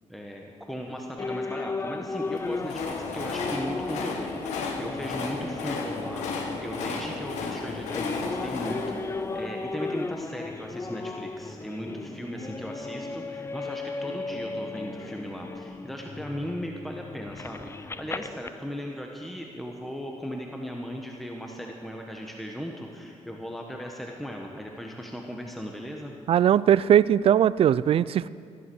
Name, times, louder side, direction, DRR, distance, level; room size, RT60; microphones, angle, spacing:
voice 1, 0.1-6.3 6.6-26.1, equal, ahead, 1 dB, 1.4 m, -37 dB
sound 1, 1.2-18.5, left 3 dB, 20° left, 0.5 m, -36 dB
Train, 2.2-10.3, left 4 dB, 90° left, 1.7 m, -34 dB
voice 2, 26.3-28.3, right 10 dB, 55° right, 19 dB, 0.4 m, -20 dB
14.5 x 11.0 x 6.3 m, 2.3 s
cardioid pair, 85°, 12 cm